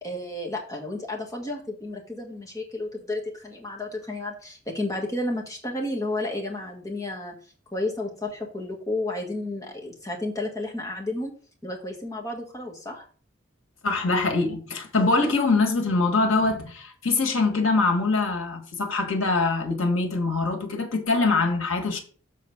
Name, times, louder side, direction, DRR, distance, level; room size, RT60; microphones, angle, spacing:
voice 1, 0.0-7.3 7.7-11.3 11.6-13.0, left 2 dB, 15° left, 1.5 m, -32 dB
voice 2, 13.8-22.0, left 3 dB, 90° left, 1.6 m, -23 dB
7.3 x 4.2 x 5.8 m
head